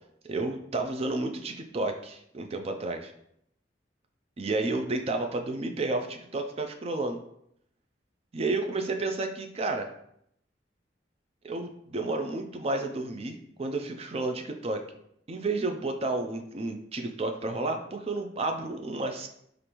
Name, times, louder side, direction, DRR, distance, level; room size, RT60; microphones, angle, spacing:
voice 1, 0.3-3.1 4.4-7.2 8.3-9.9 11.4-14.8 15.3-19.3, right 2 dB, 35° right, 4 dB, 0.4 m, -31 dB
4.9 x 2.5 x 3.0 m, 0.73 s
head